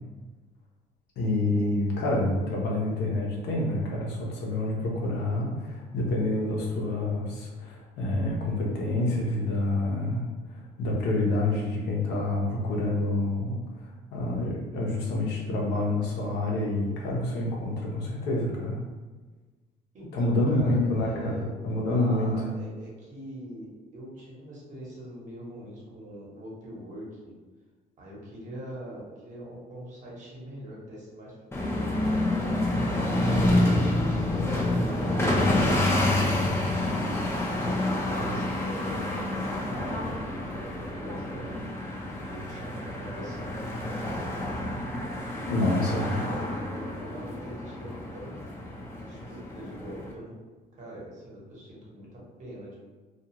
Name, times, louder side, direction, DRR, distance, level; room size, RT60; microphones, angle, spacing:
voice 1, 1.2-10.2 10.8-13.6 14.1-18.8 20.1-22.3 45.5-46.2, left 2 dB, 80° left, -2 dB, 0.8 m, -27 dB
voice 2, 19.9-21.5 21.9-27.3 28.0-31.4 31.7-32.4 33.0-35.8 36.8-41.6 42.2-44.6 45.3-48.4 49.0-50.4 50.8-52.8, right 1 dB, 45° right, -5 dB, 1.1 m, -43 dB
sound 1, 31.5-50.1, left 1 dB, 15° left, 0.6 m, -28 dB
2.4 x 2.3 x 2.9 m, 1.3 s
cardioid pair, 110°, 17 cm